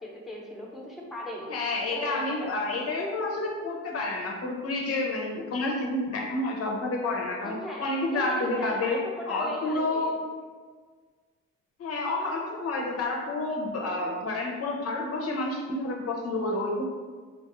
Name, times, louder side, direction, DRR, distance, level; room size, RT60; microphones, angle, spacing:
voice 1, 0.0-1.5 1.9-2.5 7.4-10.1, left 1 dB, ahead, -3 dB, 0.7 m, -38 dB
voice 2, 1.5-7.5 7.8-10.2 11.8-16.8, left 2 dB, 50° left, 0 dB, 0.6 m, -29 dB
4.0 x 2.3 x 2.9 m, 1.5 s
cardioid pair, 90°, 30 cm